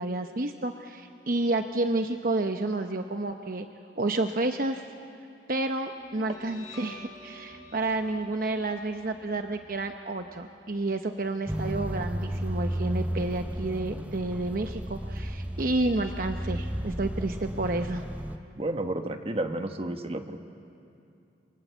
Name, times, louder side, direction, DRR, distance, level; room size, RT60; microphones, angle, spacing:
voice 1, 0.0-3.7 4.0-4.8 5.5-18.0, right 2 dB, 55° right, 6 dB, 0.9 m, -30 dB
Guitar, 6.0-13.0, left 1 dB, 20° left, 4.5 m, -50 dB
sound 1, 11.5-18.4, equal, 10° right, 0.7 m, -33 dB
voice 2, 18.5-20.4, right 1 dB, 35° right, 6 dB, 1.3 m, -31 dB
28.0 x 24.0 x 8.1 m, 2.7 s
head